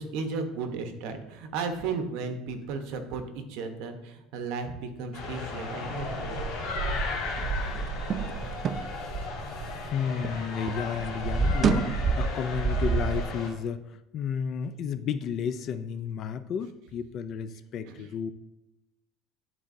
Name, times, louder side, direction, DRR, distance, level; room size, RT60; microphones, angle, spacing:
voice 1, 0.0-6.4 17.9-18.1, right 4 dB, 70° right, 7 dB, 0.9 m, -34 dB
sound 1, 5.1-13.5, left 3 dB, 65° left, 2.0 m, -36 dB
sound 2, 6.0-10.4 10.7-13.2, right 5 dB, 35° right, 0.3 m, -29 dB
voice 2, 9.5-18.3, left 7 dB, 45° left, 13 dB, 0.4 m, -33 dB
11.0 x 4.1 x 2.6 m, 0.94 s
cardioid pair, 140°, 0 cm